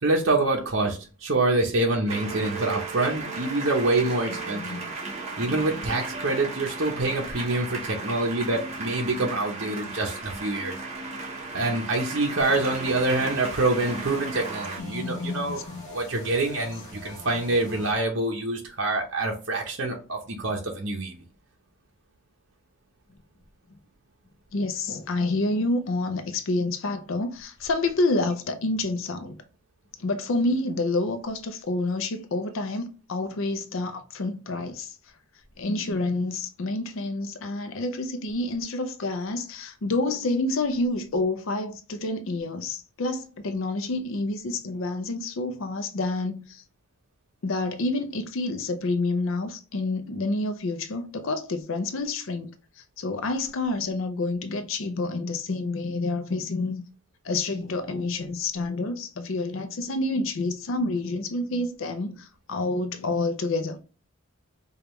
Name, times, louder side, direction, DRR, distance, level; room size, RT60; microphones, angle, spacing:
voice 1, 0.0-4.8 5.4-10.8 11.5-21.1, right 2 dB, 55° right, 0.7 m, -26 dB
sound 1, 2.1-14.8, right 3 dB, 30° right, 1.0 m, -35 dB
voice 2, 4.5-4.9 14.8-15.8 24.5-29.4 30.0-35.0 35.6-46.6 47.4-56.8 57.2-63.8, left 2 dB, 65° left, 0.5 m, -28 dB
sound 2, 12.4-17.9, left 1 dB, 15° left, 1.5 m, -44 dB
5.0 x 2.3 x 3.0 m
head